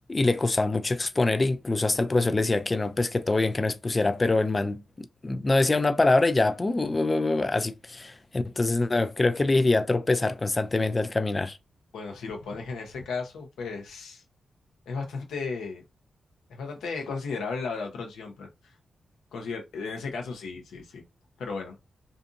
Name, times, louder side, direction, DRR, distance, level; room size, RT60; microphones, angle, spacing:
voice 1, 0.1-11.6, left 2 dB, 30° left, 0.3 m, -24 dB
voice 2, 11.9-14.2 14.9-15.8 16.5-18.5 19.3-21.0 21.4-21.8, left 4 dB, 90° left, 0.8 m, -35 dB
2.5 x 2.5 x 2.5 m
cardioid pair, 70°, 0 cm